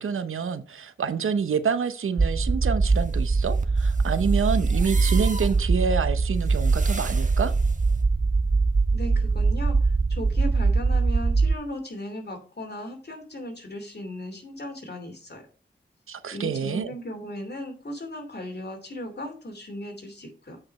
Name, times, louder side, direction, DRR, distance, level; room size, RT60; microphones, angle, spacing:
voice 1, 0.0-7.5 16.1-16.9, right 6 dB, 90° right, 12 dB, 0.7 m, -27 dB
sound 1, 2.2-11.6, right 4 dB, 20° right, 0.4 m, -22 dB
sound 2, 2.9-8.0, right 3 dB, 40° right, 1.3 m, -40 dB
voice 2, 8.9-15.5 16.3-20.6, left 1 dB, 55° left, 5 dB, 2.6 m, -37 dB
8.5 x 4.9 x 4.2 m, 0.39 s
cardioid pair, 45°, 21 cm